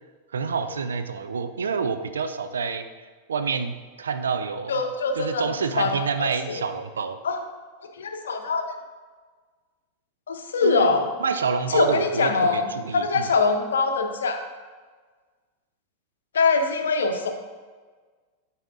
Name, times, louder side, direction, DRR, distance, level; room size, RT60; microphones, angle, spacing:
voice 1, 0.3-4.7 5.2-7.2 10.6-10.9 11.2-13.3, right 5 dB, 70° right, 9 dB, 0.4 m, -28 dB
voice 2, 4.7-5.5 5.8-6.7 7.2-7.4 7.9-8.7 10.3-11.1 11.7-14.4 16.3-17.3, left 4 dB, 65° left, 5 dB, 0.7 m, -23 dB
10.5 x 4.2 x 2.5 m, 1.5 s
figure-of-eight pair, 90°, 0 cm